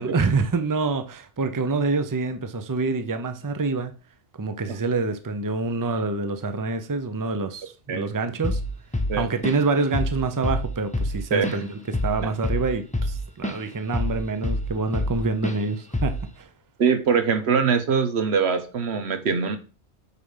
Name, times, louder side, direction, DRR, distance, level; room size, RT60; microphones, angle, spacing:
voice 1, 0.0-3.9 4.4-8.6 9.2-11.7 12.0-16.5, right 3 dB, 20° right, 0.6 m, -26 dB
Drum kit / Drum, 8.4-8.7 8.9-9.7 9.9-10.2 10.4-13.6 13.9-15.2 15.4-15.6 15.9-16.3, left 1 dB, 5° left, 0.9 m, -26 dB
voice 2, 16.8-19.6, right 6 dB, 75° right, 1.2 m, -23 dB
8.2 x 3.6 x 5.5 m
omnidirectional pair, 1.1 m